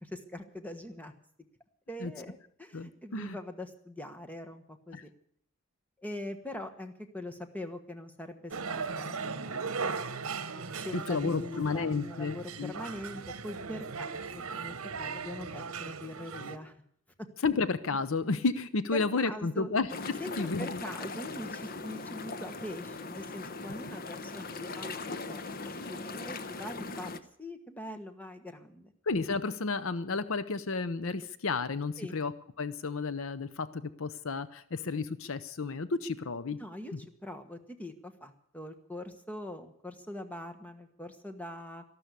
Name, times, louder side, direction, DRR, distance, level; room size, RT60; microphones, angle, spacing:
voice 1, 0.0-1.1 1.9-5.1 6.0-9.8 10.7-16.7 17.2-17.3 18.9-19.7 20.2-27.1 27.4-28.9 32.0-32.2 36.6-41.8, left 1 dB, 5° left, 7 dB, 1.3 m, -43 dB
voice 2, 2.7-3.4 4.9-5.0 11.1-12.7 17.4-19.9 20.4-20.8 29.1-32.3 32.6-36.6 36.9-37.0, left 4 dB, 65° left, 14 dB, 0.7 m, -32 dB
sound 1, 8.5-16.6, right 5 dB, 70° right, 1.1 m, -38 dB
sound 2, 19.9-27.2, left 3 dB, 40° left, 0.8 m, -40 dB
13.5 x 12.5 x 8.3 m, 0.65 s
head